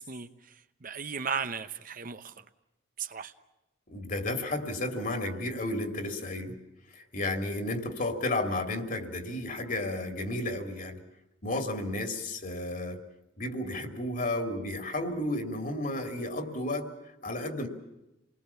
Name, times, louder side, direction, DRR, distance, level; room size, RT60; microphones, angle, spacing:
voice 1, 0.0-2.5 3.0-3.3, right 6 dB, 45° right, 10 dB, 0.9 m, -36 dB
voice 2, 3.9-6.5 6.9-11.0 11.4-13.0 13.4-16.9 17.2-17.7, left 1 dB, 45° left, 5 dB, 2.7 m, -32 dB
28.0 x 20.0 x 7.0 m, 0.94 s
head